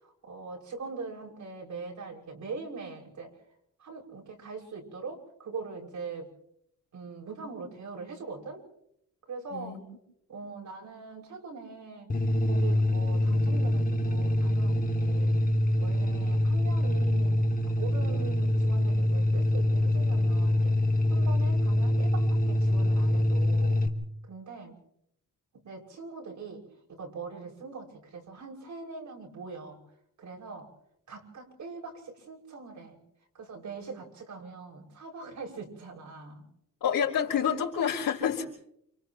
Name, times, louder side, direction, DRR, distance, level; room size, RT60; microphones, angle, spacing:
voice 1, 0.0-3.4 3.8-6.3 6.9-8.6 9.3-9.8 10.3-12.1 12.4-15.4 15.8-17.4 17.7-20.7 21.1-23.8 24.3-24.7 25.5-26.6 26.9-29.8 30.2-30.7 31.1-33.0 33.3-36.4, right 4 dB, 60° right, 0 dB, 6.4 m, -42 dB
voice 2, 9.5-9.8 36.8-38.4, left 8 dB, 80° left, -6 dB, 4.4 m, -28 dB
sound 1, 12.1-23.9, left 1 dB, 25° left, 2.2 m, -25 dB
29.0 x 28.5 x 3.1 m, 0.72 s
wide cardioid pair, 145°, 32 cm